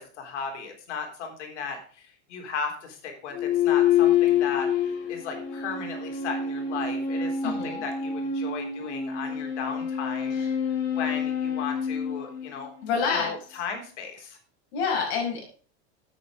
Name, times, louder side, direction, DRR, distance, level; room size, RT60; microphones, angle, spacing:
voice 1, 0.0-10.4 10.9-12.7 13.1-14.4, left 5 dB, 90° left, 3 dB, 3.5 m, -36 dB
sound 1, 3.3-13.0, left 8 dB, 35° left, 2.4 m, -27 dB
voice 2, 7.4-7.8 10.3-10.5 12.8-13.3 14.7-15.5, left 5 dB, 65° left, 1 dB, 5.3 m, -28 dB
9.3 x 8.4 x 5.0 m, 0.41 s
supercardioid pair, 150°, 34 cm